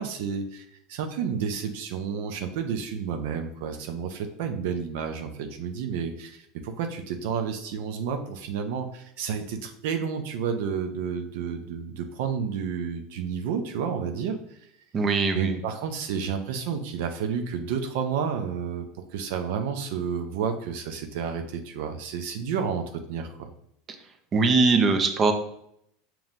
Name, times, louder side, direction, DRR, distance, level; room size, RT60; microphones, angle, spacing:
voice 1, 0.0-14.6 15.3-23.5, right 6 dB, 75° right, 5 dB, 0.5 m, -31 dB
voice 2, 14.9-15.6 24.3-25.3, right 4 dB, 30° right, 6 dB, 0.6 m, -21 dB
5.2 x 3.0 x 2.5 m, 0.73 s
supercardioid pair, 110°, 0 cm